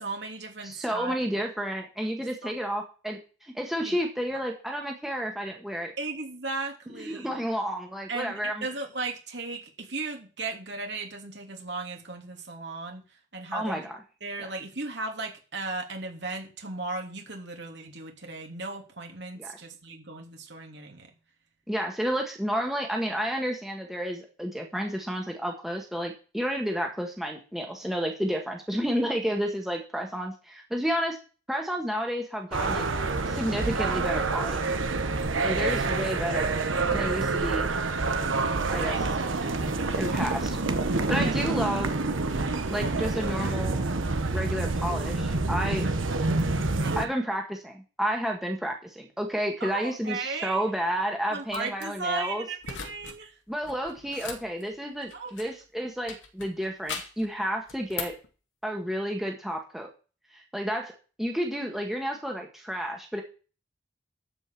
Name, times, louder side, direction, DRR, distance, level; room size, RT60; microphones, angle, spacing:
voice 1, 0.0-1.1 2.2-2.5 3.8-4.0 4.3-4.4 6.0-7.4 8.1-13.0 13.3-13.9 14.2-21.1 35.6-35.9 38.8-39.1 41.1-41.3 46.8-47.1 49.6-50.7 51.3-53.3 55.1-55.5, right 3 dB, 60° right, 2 dB, 3.0 m, -36 dB
voice 2, 0.6-5.9 7.0-8.7 13.5-14.0 19.4-19.5 21.7-31.2 31.5-32.8 33.3-34.7 35.4-36.6 36.9-37.7 38.7-39.0 39.9-40.6 40.9-41.9 42.7-43.8 44.3-45.9 46.9-52.4 53.5-58.2 58.6-59.9 60.5-60.9 61.2-63.2, equal, ahead, 1 dB, 1.6 m, -31 dB
sound 1, 32.5-47.0, right 3 dB, 85° right, 1.1 m, -27 dB
sound 2, 51.5-51.8 52.6-53.2 53.5-55.6 56.1-57.3 57.7-58.3, left 6 dB, 75° left, 2.2 m, -39 dB
13.0 x 5.4 x 7.6 m, 0.35 s
head